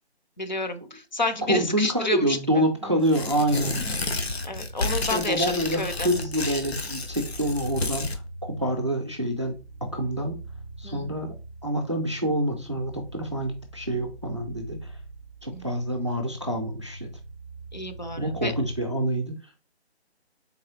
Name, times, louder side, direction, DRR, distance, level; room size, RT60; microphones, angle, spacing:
voice 1, 0.4-2.4 2.8-2.9 4.4-6.1 10.8-11.1 15.5-15.6 17.7-18.5, left 2 dB, 45° left, 8 dB, 0.5 m, -30 dB
voice 2, 1.5-3.8 5.1-10.4 10.8-11.3 11.6-14.9 15.4-17.1 18.2-19.3, right 1 dB, 30° right, 4 dB, 0.5 m, -27 dB
Tearing, 3.0-8.2, left 2 dB, 70° left, 0.8 m, -31 dB
sound 1, 4.4-18.8, right 1 dB, 85° left, 1.9 m, -42 dB
3.9 x 3.2 x 3.0 m, 0.31 s
figure-of-eight pair, 150°, 33 cm